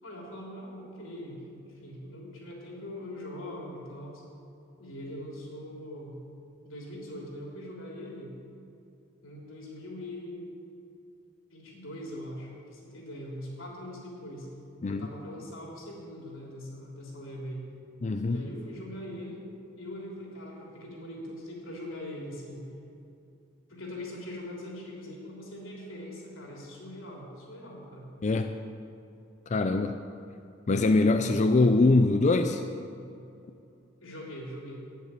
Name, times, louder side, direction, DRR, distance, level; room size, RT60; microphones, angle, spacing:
voice 1, 0.0-4.2 4.8-6.2 6.6-8.3 9.2-10.5 11.5-14.5 14.8-17.6 18.3-22.6 23.7-28.1 34.0-34.8, left 1 dB, 90° left, -2 dB, 3.3 m, -42 dB
voice 2, 18.0-18.4 28.2-28.6 29.5-30.0 30.7-32.6, left 2 dB, 35° left, 7 dB, 0.4 m, -23 dB
9.0 x 8.3 x 9.0 m, 2.6 s
head